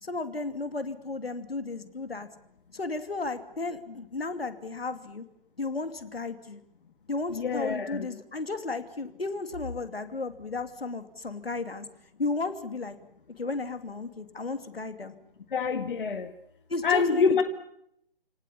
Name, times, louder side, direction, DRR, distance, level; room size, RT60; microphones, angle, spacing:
voice 1, 0.0-2.3 2.7-5.2 5.6-6.6 7.1-11.9 12.2-13.0 13.4-15.1 16.7-17.4, left 3 dB, 85° left, 9 dB, 2.8 m, -34 dB
voice 2, 7.3-8.1 15.5-16.3 16.8-17.4, left 5 dB, 60° left, 7 dB, 1.8 m, -26 dB
29.5 x 18.5 x 8.5 m, 0.77 s
figure-of-eight pair, 145°, 29 cm